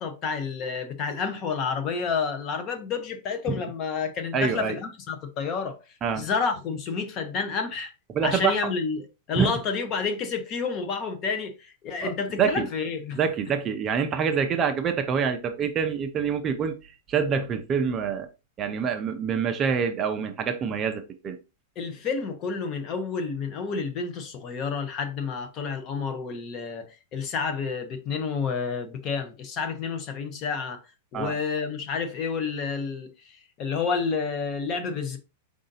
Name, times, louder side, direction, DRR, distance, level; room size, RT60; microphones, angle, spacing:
voice 1, 0.0-5.8 6.1-7.9 8.2-13.2 21.8-30.8 31.1-35.2, left 5 dB, 30° left, 0.7 m, -30 dB
voice 2, 4.3-4.8 6.0-6.2 8.1-8.6 9.4-9.5 12.0-12.1 12.4-12.7 13.2-18.3 18.6-21.4 31.1-31.3, right 6 dB, 20° right, 0.5 m, -26 dB
4.9 x 2.6 x 3.9 m
supercardioid pair, 160°, 0 cm